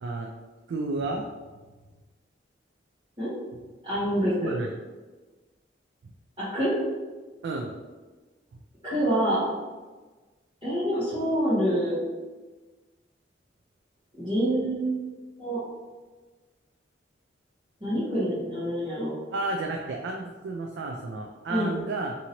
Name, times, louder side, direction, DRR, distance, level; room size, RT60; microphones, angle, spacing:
voice 1, 0.7-1.3 4.4-4.7 7.4-7.7 19.3-22.2, right 3 dB, 70° right, 1 dB, 0.3 m, -31 dB
voice 2, 3.8-4.5 6.4-6.7 8.8-9.5 10.6-12.0 14.2-15.0 15.4-15.6 17.8-19.1 21.5-21.7, equal, 25° right, -14 dB, 1.0 m, -26 dB
2.8 x 2.7 x 2.8 m, 1.3 s
head